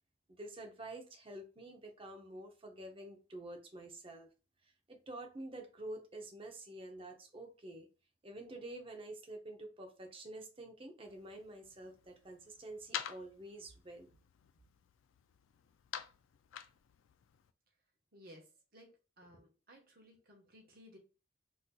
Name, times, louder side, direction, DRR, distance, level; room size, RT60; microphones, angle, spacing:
voice 1, 0.3-4.3 4.6-7.9 8.2-14.1, right 1 dB, 30° right, 4 dB, 0.6 m, -48 dB
sound 1, 11.1-17.5, left 9 dB, 80° left, 0.3 m, -49 dB
voice 2, 18.1-21.0, equal, 50° right, 1 dB, 1.0 m, -59 dB
4.1 x 2.6 x 2.3 m, 0.33 s
head